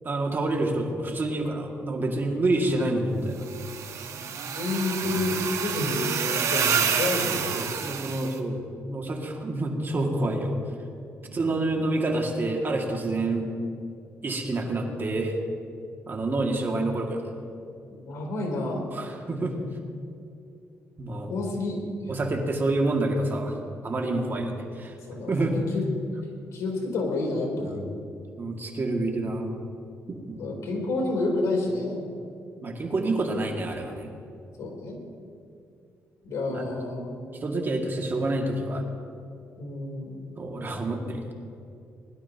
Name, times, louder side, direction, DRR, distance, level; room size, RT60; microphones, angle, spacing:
voice 1, 0.0-3.5 5.0-5.2 7.5-8.6 8.9-10.6 11.3-13.5 14.2-15.4 16.1-17.2 18.9-19.6 21.0-21.3 22.1-23.6 23.8-24.9 25.3-25.6 27.6-27.9 28.4-29.6 30.1-30.4 32.6-34.1 36.5-36.7 37.4-38.9 40.4-41.3, right 2 dB, 40° right, 1 dB, 2.1 m, -28 dB
sound 1, 3.4-8.3, right 7 dB, 65° right, 1.1 m, -28 dB
voice 2, 4.2-7.6 11.2-11.8 17.9-18.9 21.3-22.1 23.9-24.4 25.1-25.8 26.5-27.7 30.4-32.1 34.6-35.0 36.2-37.2 39.6-40.3, left 2 dB, 70° left, -1 dB, 3.4 m, -30 dB
20.5 x 12.0 x 2.9 m, 2.5 s
cardioid pair, 85°, 5 cm